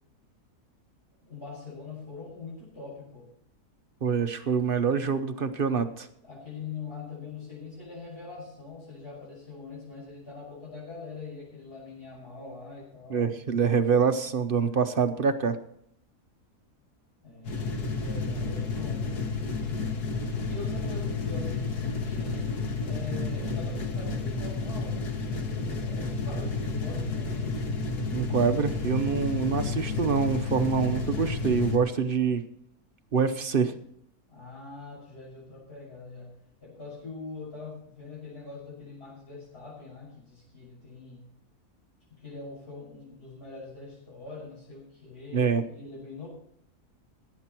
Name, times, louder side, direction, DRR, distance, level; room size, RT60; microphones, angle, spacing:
voice 1, 1.2-3.3 6.2-13.3 17.2-20.0 20.4-22.5 22.8-27.6 34.3-41.3 42.1-46.3, left 4 dB, 40° left, -6 dB, 6.4 m, -43 dB
voice 2, 4.0-6.1 13.1-15.6 28.1-32.4 33.1-33.7 45.3-45.6, right 6 dB, 40° right, 8 dB, 0.9 m, -25 dB
sound 1, 17.5-31.8, left 4 dB, 85° left, 2.0 m, -31 dB
17.5 x 8.7 x 4.5 m, 0.71 s
omnidirectional pair, 1.7 m